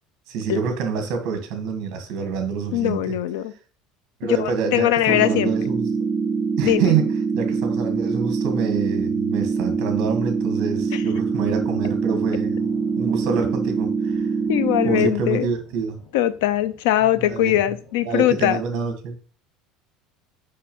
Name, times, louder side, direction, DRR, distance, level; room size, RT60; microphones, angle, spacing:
voice 1, 0.3-3.1 4.2-5.9 6.6-7.1 7.3-14.3 14.8-16.0 17.2-17.6 18.1-19.2, right 6 dB, 45° right, 6 dB, 2.0 m, -27 dB
voice 2, 2.7-3.5 4.4-5.5 6.6-6.9 10.9-11.0 14.5-15.5 16.1-18.6, left 13 dB, 90° left, 16 dB, 0.6 m, -21 dB
sound 1, 5.1-15.1, right 5 dB, 20° right, 0.5 m, -24 dB
sound 2, 9.3-18.5, left 5 dB, 60° left, 4.0 m, -50 dB
6.5 x 5.5 x 5.5 m, 0.40 s
cardioid pair, 180°, 0 cm